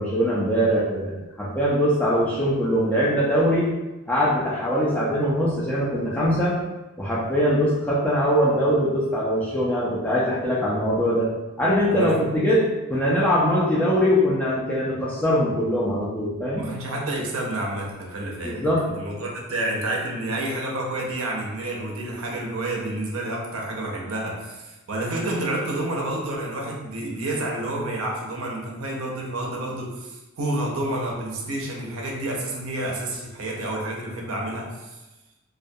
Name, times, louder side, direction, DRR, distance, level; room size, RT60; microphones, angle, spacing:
voice 1, 0.0-3.7 4.1-6.5 7.0-11.3 11.6-12.6 12.9-16.7 18.4-18.8, equal, 5° left, -7 dB, 0.3 m, -22 dB
voice 2, 16.6-18.7 18.9-35.0, right 1 dB, 70° right, -1 dB, 0.5 m, -29 dB
2.2 x 2.2 x 2.6 m, 1.1 s
head